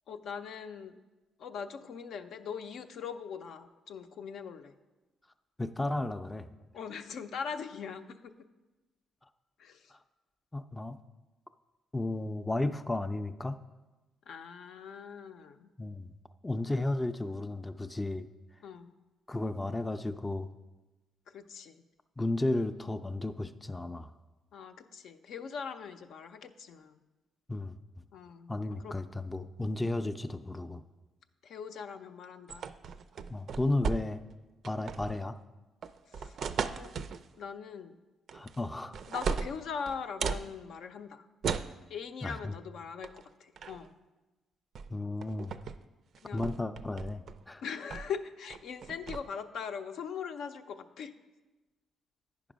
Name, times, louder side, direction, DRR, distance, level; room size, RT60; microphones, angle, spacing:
voice 1, 0.1-1.0 1.4-4.8 6.7-8.3 9.6-9.9 14.3-15.7 18.6-19.0 21.3-21.8 24.5-27.0 28.1-29.0 31.4-32.7 36.1-36.4 36.8-36.9 37.4-38.0 39.1-41.3 41.9-44.0 46.2-46.6 47.6-51.1, left 6 dB, 75° left, 7 dB, 0.5 m, -41 dB
voice 2, 5.6-6.5 9.9-10.0 10.5-11.0 11.9-13.6 15.8-16.1 16.4-18.3 19.3-20.5 22.2-24.1 27.5-27.8 28.5-30.8 33.3-34.2 34.6-35.4 38.3-38.9 42.2-42.5 44.9-45.5 46.3-47.6, left 2 dB, 15° left, 8 dB, 0.4 m, -33 dB
sound 1, 32.5-34.3 34.6-35.2 35.8-37.2 38.3-38.7 38.9-40.5 41.4-41.8 43.0-43.2 43.6-43.9 44.8-44.9 45.2-45.8 46.1-47.4 47.9-48.2 48.5-49.2, right 6 dB, 60° right, 0.4 m, -36 dB
9.2 x 5.3 x 5.1 m, 1.1 s
cardioid pair, 90°, 0 cm